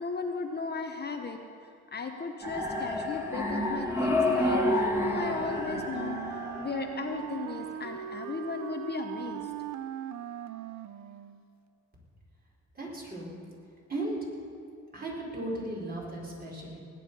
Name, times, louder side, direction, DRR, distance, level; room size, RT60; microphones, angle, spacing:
voice 1, 0.0-1.4 1.9-6.2 6.6-9.5, left 4 dB, 35° left, 4 dB, 1.0 m, -36 dB
sound 1, 2.4-7.4, left 1 dB, 10° right, 2.6 m, -29 dB
Wind instrument woodwind instrument, 5.5-11.5, right 10 dB, 70° right, 0.7 m, -39 dB
voice 2, 12.7-13.3 13.9-14.2 14.9-16.8, right 1 dB, 30° right, -4 dB, 4.5 m, -36 dB
19.5 x 9.3 x 5.5 m, 2.4 s
cardioid pair, 90°, 30 cm